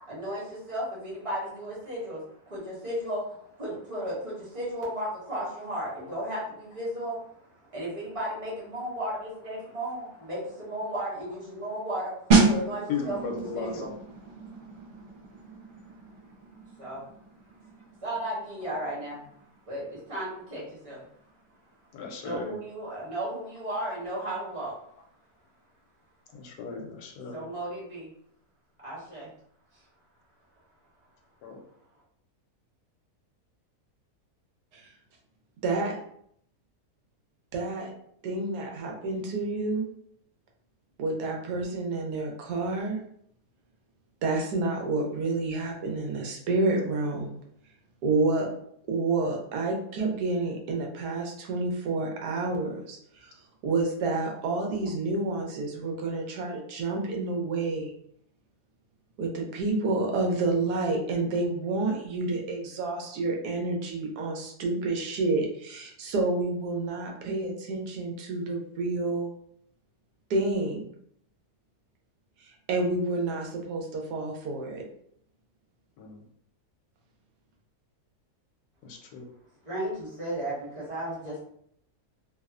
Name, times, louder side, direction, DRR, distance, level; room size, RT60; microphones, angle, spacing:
voice 1, 0.1-3.2 3.5-15.0 16.8-17.0 18.0-19.3 19.7-21.1 22.2-24.7 27.3-28.1 28.8-29.3 79.6-81.4, right 1 dB, 30° right, -7 dB, 0.8 m, -35 dB
sound 1, 12.3-22.8 23.1-23.3, right 3 dB, 70° right, 0.5 m, -30 dB
voice 2, 12.9-13.7 21.9-22.6 26.4-27.4 31.4-31.6 76.0-76.2 78.8-79.3, left 5 dB, 80° left, 2 dB, 1.1 m, -35 dB
voice 3, 35.6-36.0 37.5-37.9 38.2-39.9 41.0-43.0 44.2-47.3 48.0-48.5 48.9-53.3 53.6-57.9 59.2-69.3 70.3-70.9 72.4-74.8, right 3 dB, 85° right, 1 dB, 1.2 m, -29 dB
2.9 x 2.0 x 2.4 m, 0.68 s
omnidirectional pair, 1.7 m